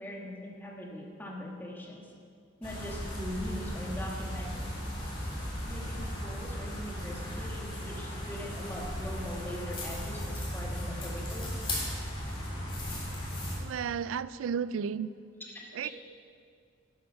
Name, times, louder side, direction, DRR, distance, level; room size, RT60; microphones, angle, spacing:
voice 1, 0.0-2.0 2.6-4.6 5.7-11.6 15.4-15.9, left 1 dB, 10° left, -2 dB, 1.6 m, -41 dB
sound 1, 2.6-13.6, equal, 30° left, 3.1 m, -36 dB
voice 2, 13.6-15.1 15.7-15.9, right 7 dB, 80° right, 17 dB, 0.3 m, -33 dB
11.5 x 8.2 x 5.7 m, 2.3 s
head